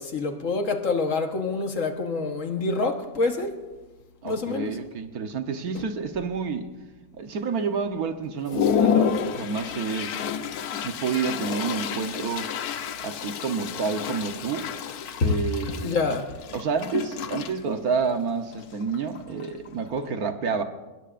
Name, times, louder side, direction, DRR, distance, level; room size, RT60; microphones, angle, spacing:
voice 1, 0.0-3.6 4.2-4.7 15.8-16.3, left 3 dB, 55° left, 1.5 m, -27 dB
Toilet flush, 3.2-3.3 3.8-4.0 4.3-4.9 5.4-5.5 5.8-6.5 7.0-7.1 7.6-7.7 8.1-20.1, left 8 dB, 70° left, 1.3 m, -30 dB
voice 2, 4.2-6.7 7.1-10.2 10.8-12.5 13.0-14.7 15.2-16.0 16.5-20.6, right 5 dB, 65° right, 1.5 m, -29 dB
25.0 x 20.5 x 2.5 m
omnidirectional pair, 1.7 m